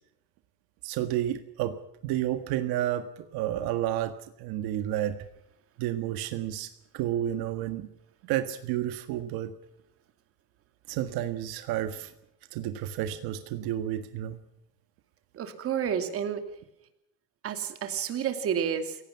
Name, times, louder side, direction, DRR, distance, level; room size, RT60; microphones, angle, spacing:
voice 1, 0.8-1.8 2.0-3.1 3.3-5.2 5.8-7.9 8.2-9.5 10.9-12.1 12.5-14.4, right 12 dB, 70° right, 8 dB, 1.8 m, -31 dB
voice 2, 15.4-16.4 17.4-19.0, right 8 dB, 35° right, 7 dB, 2.6 m, -30 dB
28.5 x 17.5 x 5.9 m, 0.79 s
cardioid pair, 165°, 39 cm